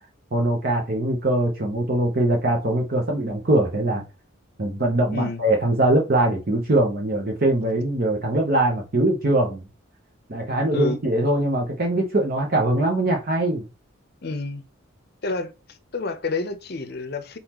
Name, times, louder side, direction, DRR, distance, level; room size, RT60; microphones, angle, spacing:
voice 1, 0.3-4.0 4.6-9.6 10.3-13.6, right 1 dB, 45° right, 0.8 m, -22 dB
voice 2, 5.1-5.4 10.7-11.0 14.2-14.6 15.2-17.4, left 3 dB, 50° left, 0.6 m, -29 dB
4.2 x 4.0 x 2.9 m
head